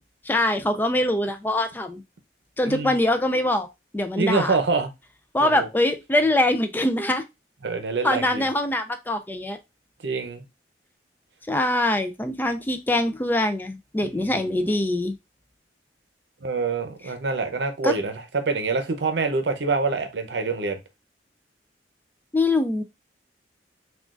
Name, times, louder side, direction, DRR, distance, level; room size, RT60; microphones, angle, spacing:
voice 1, 0.2-2.0 2.6-3.7 3.9-4.6 5.3-7.2 8.0-9.6 11.5-15.1 17.8-18.0 22.3-22.8, left 1 dB, 10° left, 0.3 m, -23 dB
voice 2, 2.6-3.0 4.2-4.9 5.4-5.7 7.6-8.4 10.0-10.4 14.0-14.3 16.4-20.8, right 4 dB, 70° right, 0.7 m, -26 dB
6.0 x 2.4 x 2.4 m
head